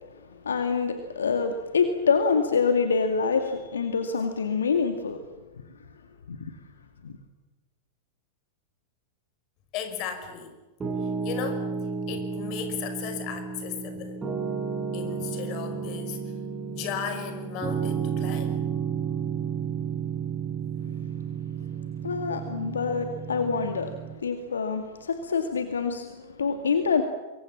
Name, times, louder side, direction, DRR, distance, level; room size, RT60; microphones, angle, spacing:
voice 1, 0.3-5.2 6.3-6.4 7.0-7.2 22.0-23.9 24.2-27.0, left 5 dB, 75° left, 7 dB, 2.2 m, -26 dB
voice 2, 9.7-10.5 11.0-11.7 12.1-14.2 14.9-16.4 16.7-18.7, left 8 dB, 40° left, 8 dB, 5.7 m, -36 dB
Piano, 10.8-24.1, right 6 dB, 15° right, 7.5 m, -32 dB
27.5 x 23.0 x 7.4 m, 1.2 s
figure-of-eight pair, 95°, 0 cm